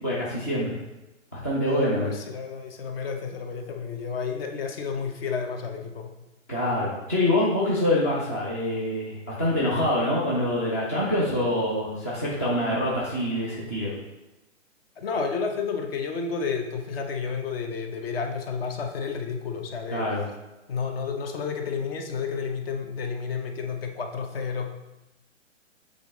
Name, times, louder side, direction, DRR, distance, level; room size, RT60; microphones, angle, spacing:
voice 1, 0.0-0.8 1.3-2.1 6.5-13.9 19.9-20.2, left 1 dB, 15° left, -7 dB, 0.3 m, -25 dB
voice 2, 2.0-6.1 15.0-20.1 20.7-24.7, left 5 dB, 50° left, 4 dB, 1.0 m, -31 dB
6.8 x 3.6 x 3.9 m, 1.0 s
hypercardioid pair, 145°, 38 cm